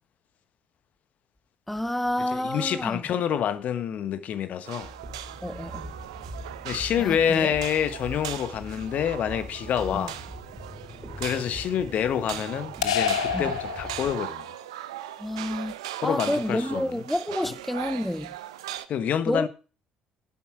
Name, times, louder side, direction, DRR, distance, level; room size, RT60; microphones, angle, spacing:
voice 1, 1.7-3.0 5.4-5.8 7.0-7.5 13.3-13.4 15.2-15.7 16.0-18.3 19.3-19.5, left 1 dB, 5° left, 0.5 m, -29 dB
voice 2, 2.2-4.9 6.6-10.2 11.2-14.4 16.0-17.0 17.4-17.5 18.9-19.5, left 9 dB, 55° left, 1.2 m, -27 dB
sound 1, 4.6-18.9, right 13 dB, 80° right, 0.6 m, -39 dB
sound 2, 4.8-14.1, equal, 25° right, 3.0 m, -42 dB
sound 3, 12.8-14.5, left 8 dB, 85° left, 0.7 m, -28 dB
10.0 x 7.7 x 6.1 m
hypercardioid pair, 55°, 3 cm